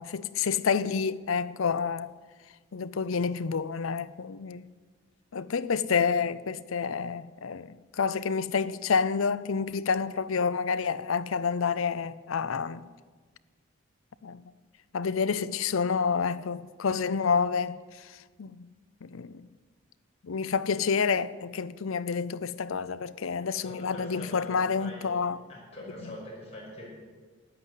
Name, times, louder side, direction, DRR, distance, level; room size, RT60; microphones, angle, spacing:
voice 1, 0.0-2.1 2.7-4.7 5.3-12.8 14.2-14.4 14.9-18.7 19.0-19.5 20.2-25.4, left 5 dB, 85° left, 0.6 m, -29 dB
voice 2, 23.6-24.5 24.8-25.2 25.5-26.9, left 1 dB, 30° left, 5.8 m, -43 dB
13.5 x 9.7 x 8.4 m
head